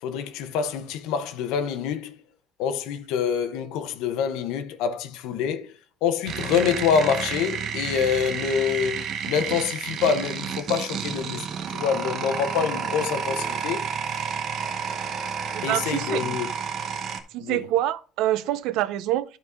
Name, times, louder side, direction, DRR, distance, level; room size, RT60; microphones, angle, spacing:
voice 1, 0.0-2.2 2.6-5.7 6.0-13.9 15.6-16.5 17.4-17.7, left 7 dB, 80° left, 0.9 m, -26 dB
sound 1, 6.3-17.2, right 7 dB, 40° right, 0.9 m, -30 dB
voice 2, 15.5-16.2 17.3-19.4, right 13 dB, 65° right, 0.6 m, -26 dB
12.0 x 4.1 x 3.6 m
cardioid pair, 180°, 0 cm